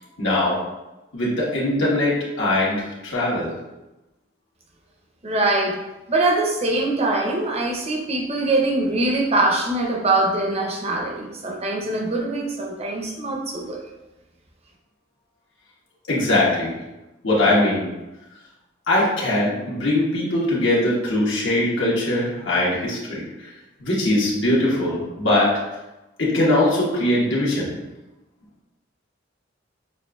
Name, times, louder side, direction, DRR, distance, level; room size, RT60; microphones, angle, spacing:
voice 1, 0.2-0.5 1.1-3.5 16.1-16.7 17.2-17.9 18.9-23.5 23.8-25.5 26.2-27.8, left 1 dB, 80° left, -6 dB, 1.5 m, -21 dB
voice 2, 5.2-5.8 6.1-13.8, right 2 dB, 35° right, 1 dB, 0.7 m, -23 dB
6.8 x 2.5 x 2.3 m, 1.0 s
head